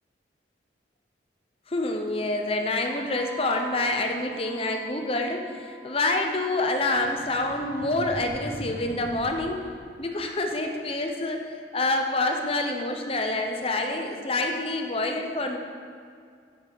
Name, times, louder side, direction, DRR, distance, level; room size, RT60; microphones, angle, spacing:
voice 1, 1.7-9.7 10.0-11.4 11.7-15.6, left 2 dB, 30° left, 4 dB, 0.7 m, -27 dB
Wind instrument woodwind instrument, 2.9-9.0, right 1 dB, 5° right, 1.1 m, -47 dB
sound 1, 6.9-10.4, equal, 65° right, 2.3 m, -41 dB
9.4 x 7.8 x 4.0 m, 2.2 s
head